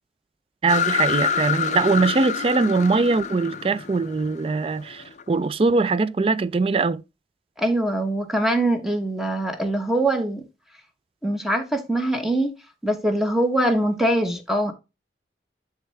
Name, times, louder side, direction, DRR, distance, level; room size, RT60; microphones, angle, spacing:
voice 1, 0.6-7.0, right 3 dB, 30° right, 0.3 m, -21 dB
sound 1, 0.7-5.2, left 6 dB, 40° left, 0.4 m, -27 dB
voice 2, 7.6-10.4 11.2-12.5 12.8-14.7, right 1 dB, ahead, 1.0 m, -23 dB
10.5 x 3.6 x 3.2 m
head